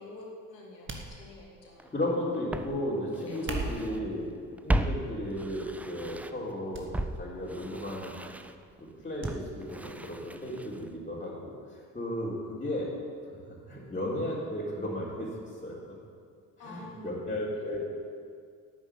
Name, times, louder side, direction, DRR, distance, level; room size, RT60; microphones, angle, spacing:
voice 1, 0.0-2.0 2.3-2.4 3.3-4.0 16.6-17.2, left 2 dB, 80° left, -1 dB, 2.2 m, -47 dB
sound 1, 0.9-1.7 3.3-4.0 4.8-5.2 5.6-5.7 6.7-6.9 7.2-7.3 9.2-9.4 9.7-9.8, right 3 dB, 25° right, 1.8 m, -38 dB
Walk footsteps, 1.8-1.9 2.5-4.0 4.3-6.5 6.9-11.0 11.2-11.3, right 1 dB, 5° right, 0.4 m, -35 dB
voice 2, 1.9-4.3 4.6-6.9 7.2-8.1 8.8-12.9 13.7-15.3 15.6-16.0 16.6-17.8, left 1 dB, 15° left, -7 dB, 3.8 m, -34 dB
11.5 x 9.2 x 8.6 m, 2.1 s
figure-of-eight pair, 55°, 49 cm